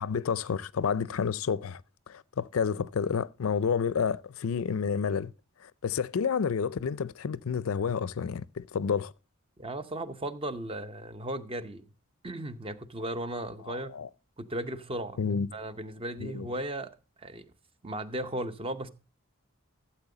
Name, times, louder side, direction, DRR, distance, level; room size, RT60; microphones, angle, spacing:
voice 1, 0.0-1.8 2.1-5.3 5.6-9.1 13.6-14.1 15.2-15.5 16.2-16.5, left 6 dB, 75° left, 0.4 m, -30 dB
voice 2, 9.6-11.8 12.2-13.9 14.4-16.9 17.2-17.4 17.8-18.9, right 1 dB, 25° right, 0.7 m, -36 dB
13.0 x 7.6 x 3.8 m
head